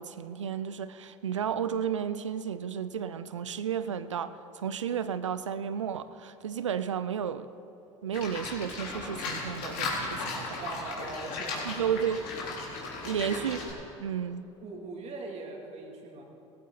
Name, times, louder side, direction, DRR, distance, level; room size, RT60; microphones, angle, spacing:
voice 1, 0.0-7.5 8.0-10.6 11.6-12.2 13.0-13.6 14.0-14.4, right 8 dB, 90° right, 13 dB, 0.5 m, -32 dB
Livestock farm animals working animals, 8.1-13.7, left 3 dB, 65° left, 3.7 m, -36 dB
voice 2, 10.6-12.2 13.1-13.4 14.6-16.2, right 3 dB, 45° right, 0 dB, 2.8 m, -41 dB
17.5 x 15.0 x 4.1 m, 3.0 s
hypercardioid pair, 70°, 15 cm